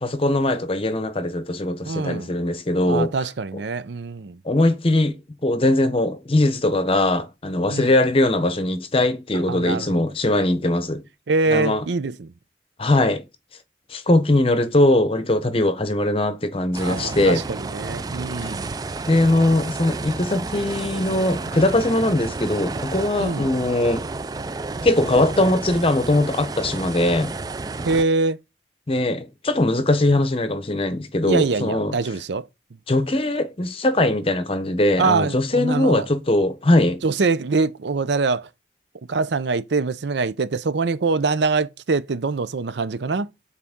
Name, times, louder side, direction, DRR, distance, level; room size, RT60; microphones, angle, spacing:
voice 1, 0.0-3.1 4.4-11.0 11.5-11.8 12.8-13.2 13.9-17.4 18.4-18.5 19.1-24.1 24.8-27.3 28.9-31.9 32.9-37.0, left 1 dB, 30° left, 0.8 m, -21 dB
voice 2, 1.8-2.3 2.8-4.4 7.7-7.9 9.5-10.0 11.3-12.3 16.8-18.7 23.2-23.5 27.8-28.4 31.3-32.5 35.0-36.1 37.0-38.5 39.1-43.3, right 4 dB, 70° right, 0.6 m, -24 dB
sound 1, 16.7-28.0, right 3 dB, 20° right, 0.3 m, -31 dB
9.5 x 4.2 x 3.6 m
head